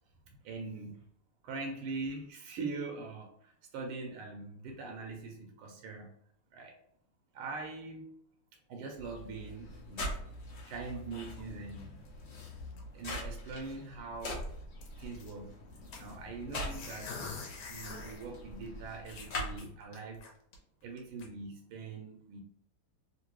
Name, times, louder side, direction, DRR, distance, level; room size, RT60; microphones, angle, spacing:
voice 1, 0.4-1.0 1.4-6.1 6.5-6.7 7.3-8.1 8.7-10.2 10.7-12.0 12.9-14.4 15.0-15.5 16.0-17.2 17.7-20.2 20.8-22.4, right 3 dB, 85° right, 2 dB, 1.5 m, -42 dB
sound 1, 8.9-19.6, left 1 dB, 55° left, 0.7 m, -43 dB
sound 2, 11.0-12.2 12.5-13.0 13.4-13.5 13.7-13.8 14.2-15.3 15.9-18.2 18.6-18.7 19.1-20.6 21.0-21.3, left 4 dB, 75° left, 1.5 m, -46 dB
3.6 x 2.6 x 2.9 m, 0.66 s
omnidirectional pair, 2.3 m